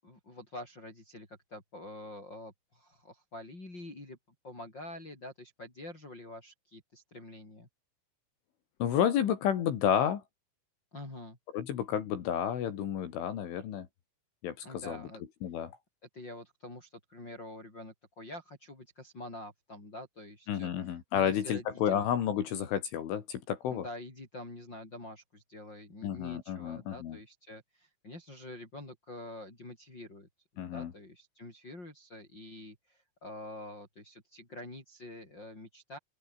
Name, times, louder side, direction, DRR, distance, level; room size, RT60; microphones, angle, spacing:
voice 1, 0.0-4.2 4.4-7.7 10.9-11.4 14.6-15.2 16.1-20.7 21.1-22.1 23.7-30.3 30.7-36.0, left 1 dB, 20° left, 6.9 m, -46 dB
voice 2, 8.8-10.2 11.5-13.9 14.4-15.0 15.4-15.7 20.5-23.8 26.0-27.2 30.6-30.9, left 9 dB, 70° left, 4.9 m, -31 dB
open air
omnidirectional pair, 6.0 m